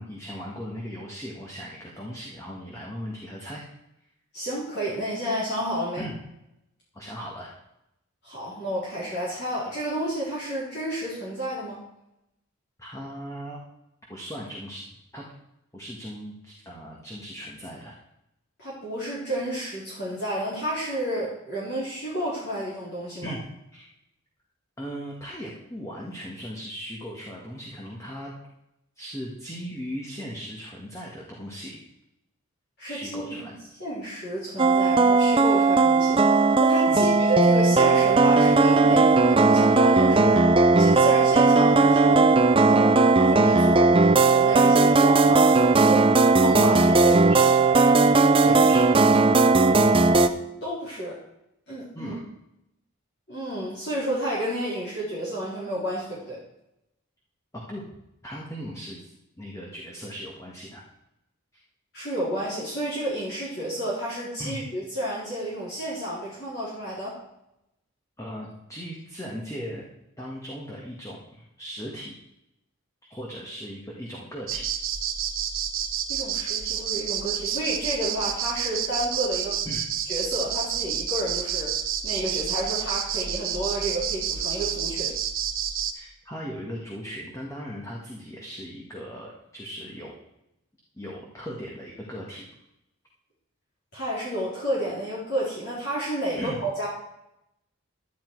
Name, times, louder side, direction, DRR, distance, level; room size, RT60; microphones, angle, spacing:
voice 1, 0.0-3.6 6.0-6.2 6.9-7.5 12.8-13.6 14.1-14.8 15.1-15.2 15.7-17.9 23.2-23.4 23.7-23.9 24.8-28.3 29.0-31.8 32.9-33.6 36.9-37.2 47.0-47.4 48.4-48.9 51.9-52.2 57.5-57.8 58.2-60.8 64.4-64.6 68.2-69.9 70.2-72.1 73.1-74.7 79.6-79.9 85.9-90.1 91.0-92.4 96.4-96.6, equal, 15° left, -3 dB, 1.7 m, -38 dB
voice 2, 4.3-6.0 8.2-11.8 18.6-23.3 32.8-33.2 33.8-42.4 42.6-46.0 46.4-47.2 48.2-48.7 50.6-51.2 51.7-52.2 53.3-56.4 61.9-67.2 76.1-79.6 80.1-81.8 82.0-85.1 93.9-96.9, right 1 dB, 50° left, -8 dB, 3.9 m, -31 dB
sound 1, 34.6-50.3, right 3 dB, 25° right, 0.5 m, -18 dB
sound 2, 74.5-85.9, right 9 dB, 70° right, 1.1 m, -29 dB
12.0 x 10.0 x 4.8 m, 0.84 s
head